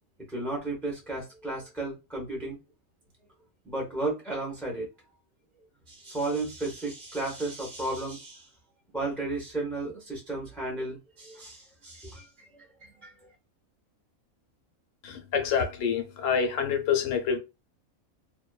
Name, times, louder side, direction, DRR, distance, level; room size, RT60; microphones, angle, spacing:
voice 1, 0.3-2.6 3.6-4.9 5.9-8.5 8.9-12.3 12.6-13.1, right 2 dB, ahead, 0.5 m, -34 dB
voice 2, 15.0-17.4, left 7 dB, 70° left, 0.9 m, -27 dB
2.6 x 2.2 x 2.2 m
omnidirectional pair, 1.5 m